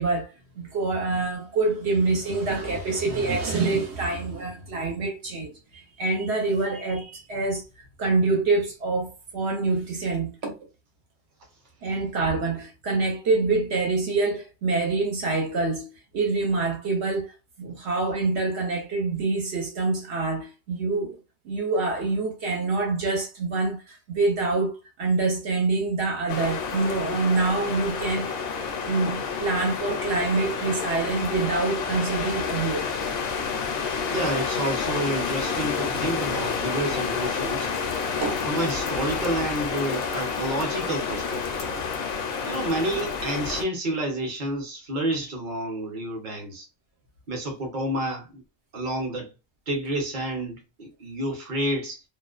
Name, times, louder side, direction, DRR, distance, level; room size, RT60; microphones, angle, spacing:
voice 1, 0.0-7.6 8.0-10.6 11.8-17.3 17.6-21.2 21.4-28.3 28.9-32.9 38.2-38.4, right 3 dB, 75° right, 1.0 m, -26 dB
sound 1, 26.3-43.6, left 6 dB, 65° left, 0.7 m, -29 dB
voice 2, 34.0-38.0 38.5-41.7 42.4-46.7 47.3-48.4 48.7-49.3 49.7-52.0, right 1 dB, 45° right, 0.9 m, -29 dB
2.4 x 2.1 x 2.4 m
omnidirectional pair, 1.2 m